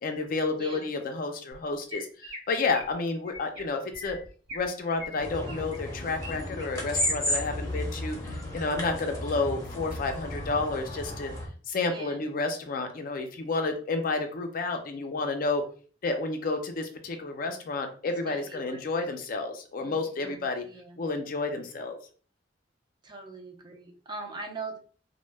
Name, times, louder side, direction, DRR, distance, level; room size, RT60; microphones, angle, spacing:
voice 1, 0.0-4.2 4.5-11.3 11.7-15.6 16.0-20.6 21.0-22.0, left 3 dB, 50° left, 5 dB, 0.4 m, -30 dB
voice 2, 0.5-0.9 11.9-12.2 18.0-19.1 19.8-21.0 23.0-24.8, right 3 dB, 25° right, 3 dB, 0.4 m, -42 dB
Chirp tweet, 1.5-1.6 1.9-2.4 2.7-2.9 3.3-3.6 3.9-4.6 5.0-6.3 6.6-7.1 7.6-7.8 8.3-8.6, left 2 dB, 65° right, 1.1 m, -42 dB
sound 1, 5.2-11.5, left 1 dB, 20° left, 0.7 m, -33 dB
2.1 x 2.1 x 3.1 m, 0.41 s
head